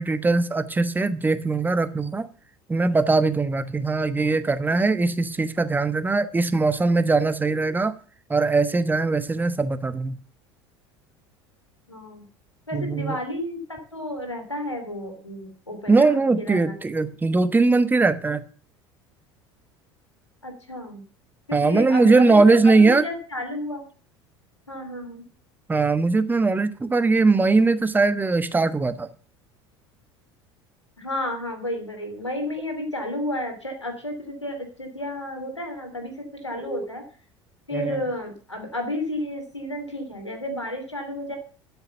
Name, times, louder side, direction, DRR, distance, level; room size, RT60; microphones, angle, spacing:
voice 1, 0.0-2.3 2.7-7.9 8.3-10.2 12.7-13.2 15.9-18.4 21.5-23.0 25.7-29.1 36.6-36.9 37.7-38.0, right 3 dB, 10° right, 1.1 m, -20 dB
voice 2, 11.9-12.2 12.7-16.7 20.4-21.0 21.5-23.9 24.7-25.2 31.0-37.0 37.7-41.4, left 1 dB, 90° left, 3.0 m, -32 dB
12.5 x 7.1 x 6.7 m
figure-of-eight pair, 70°, 15 cm